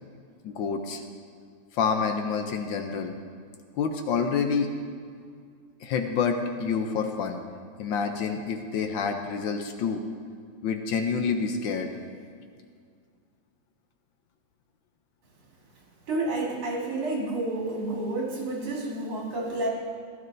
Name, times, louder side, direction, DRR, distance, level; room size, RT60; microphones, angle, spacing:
voice 1, 0.4-1.0 1.7-3.1 3.7-4.7 5.8-7.4 7.8-10.0 10.6-11.9, left 5 dB, 70° left, 5 dB, 1.3 m, -28 dB
voice 2, 16.1-19.7, right 2 dB, 75° right, -2 dB, 2.8 m, -30 dB
15.5 x 12.0 x 2.6 m, 2.1 s
omnidirectional pair, 2.4 m